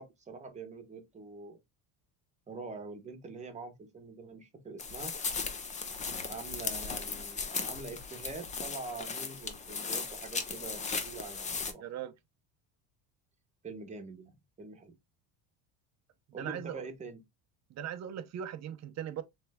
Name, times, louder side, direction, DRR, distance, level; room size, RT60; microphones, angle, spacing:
voice 1, 0.0-1.6 2.5-5.2 6.2-11.8 13.6-15.0 16.3-17.2, right 3 dB, 15° right, 0.9 m, -45 dB
sound 1, 4.8-11.7, left 5 dB, 20° left, 0.3 m, -37 dB
voice 2, 11.8-12.1 16.3-16.9 17.7-19.2, right 10 dB, 35° right, 0.6 m, -39 dB
3.4 x 3.2 x 3.3 m
cardioid pair, 140°, 45 cm